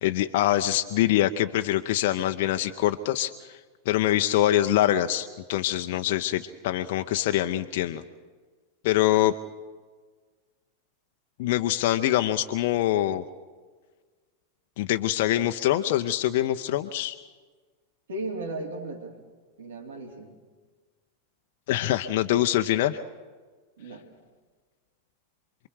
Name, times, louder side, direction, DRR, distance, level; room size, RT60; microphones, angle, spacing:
voice 1, 0.0-3.6 3.9-8.0 8.8-9.3 11.4-13.2 14.8-17.2 21.7-23.0, left 13 dB, 50° left, 7 dB, 0.8 m, -24 dB
voice 2, 18.1-19.2 19.6-20.4 23.8-24.1, right 2 dB, 65° right, 3 dB, 3.6 m, -36 dB
27.5 x 22.5 x 4.8 m, 1.4 s
figure-of-eight pair, 90°, 0 cm